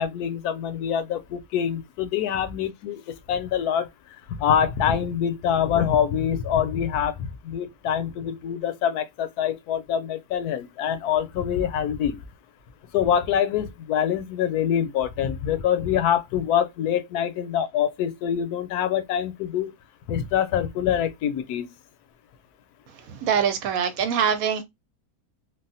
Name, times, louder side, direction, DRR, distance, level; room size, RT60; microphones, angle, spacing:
voice 1, 0.0-3.9 4.4-12.2 12.9-19.7 20.1-21.7, left 9 dB, 80° left, 1.1 m, -25 dB
voice 2, 23.1-24.6, right 7 dB, 70° right, 1.0 m, -23 dB
3.4 x 2.2 x 2.6 m
omnidirectional pair, 1.6 m